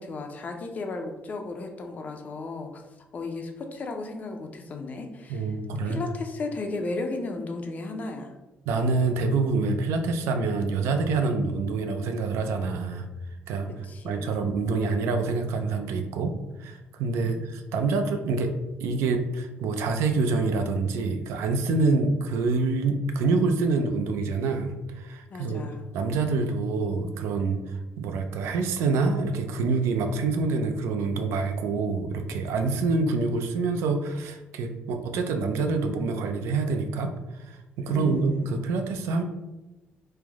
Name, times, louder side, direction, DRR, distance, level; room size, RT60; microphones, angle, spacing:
voice 1, 0.0-2.8 3.1-5.4 5.9-8.3 13.8-14.4 17.2-17.5 25.3-25.8 37.9-38.5, left 3 dB, 35° left, 4 dB, 0.4 m, -34 dB
voice 2, 5.3-6.0 8.7-13.1 13.5-13.7 14.0-16.3 16.6-18.5 18.8-25.6 25.9-39.2, right 3 dB, 90° right, 6 dB, 0.4 m, -26 dB
3.2 x 2.0 x 3.4 m, 1.0 s
cardioid pair, 140°, 4 cm